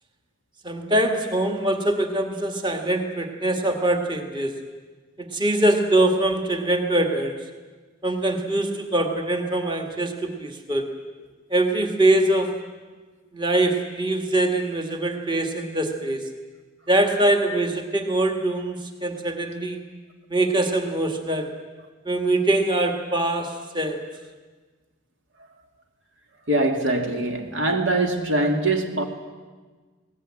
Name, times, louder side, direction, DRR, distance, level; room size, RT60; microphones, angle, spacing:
voice 1, 0.6-4.6 5.2-7.4 8.0-10.9 11.5-12.6 13.3-16.3 16.9-19.8 20.3-21.6 22.1-24.1, right 1 dB, 25° right, 1.8 m, -23 dB
voice 2, 26.5-29.0, right 2 dB, 70° right, 2.5 m, -23 dB
21.0 x 18.5 x 8.8 m
head